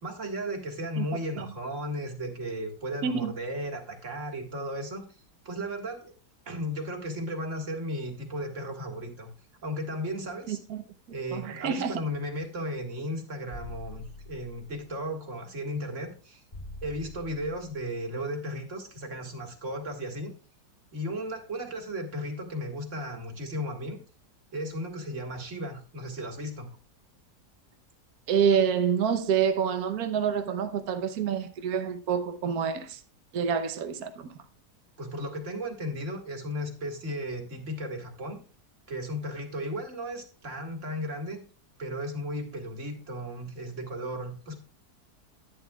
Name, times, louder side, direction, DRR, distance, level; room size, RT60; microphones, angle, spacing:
voice 1, 0.0-5.0 5.5-6.1 6.5-9.3 9.6-10.6 11.1-16.4 16.8-20.3 20.9-24.0 24.5-26.7 35.0-38.4 38.9-41.4 41.8-44.6, equal, 45° right, 2.1 m, -35 dB
voice 2, 10.5-10.8 11.3-11.9 28.3-33.0 33.3-34.3, right 7 dB, 65° right, 1.4 m, -27 dB
sound 1, 13.5-14.9 16.5-17.9, left 2 dB, 40° left, 3.6 m, -45 dB
11.0 x 10.5 x 2.4 m
omnidirectional pair, 1.8 m